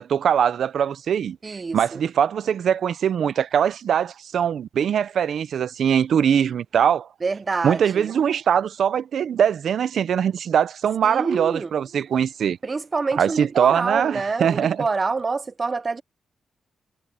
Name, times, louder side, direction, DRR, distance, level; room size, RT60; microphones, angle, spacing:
voice 1, 0.0-7.1 7.6-12.6 13.2-14.8, right 8 dB, 75° right, 0.7 m, -22 dB
voice 2, 1.4-2.0 7.2-8.1 11.0-11.7 12.6-16.0, right 4 dB, 35° right, 0.6 m, -27 dB
cardioid pair, 100°, 0 cm